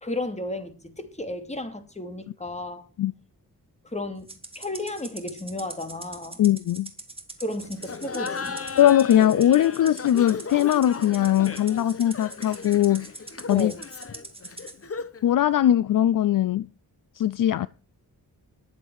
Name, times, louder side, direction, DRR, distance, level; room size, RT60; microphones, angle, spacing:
voice 1, 0.0-2.8 3.8-6.4 7.4-8.6 13.5-13.8, left 2 dB, 20° left, 2.5 m, -33 dB
Rattle (instrument), 4.3-14.8, right 2 dB, 15° right, 2.5 m, -42 dB
voice 2, 6.4-6.9 8.8-13.1 13.5-13.7 15.2-16.7 17.2-17.7, left 11 dB, 60° left, 0.5 m, -20 dB
Laughter, 7.8-15.3, left 4 dB, 40° left, 1.1 m, -36 dB
20.5 x 7.5 x 4.7 m
wide cardioid pair, 115°, 37 cm